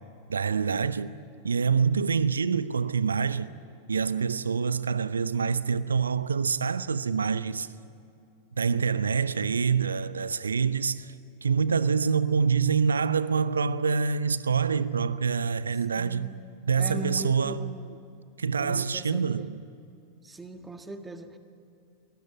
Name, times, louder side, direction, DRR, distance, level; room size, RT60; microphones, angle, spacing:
voice 1, 0.3-1.1 1.4-3.5 3.9-7.7 8.5-11.1 11.4-16.3 16.7-17.6 18.4-19.6, right 6 dB, 75° right, 0.7 m, -26 dB
voice 2, 16.0-16.4 16.7-18.0 18.6-19.5 20.2-21.4, right 1 dB, 10° right, 1.7 m, -40 dB
23.5 x 20.0 x 9.1 m
figure-of-eight pair, 90°, 0 cm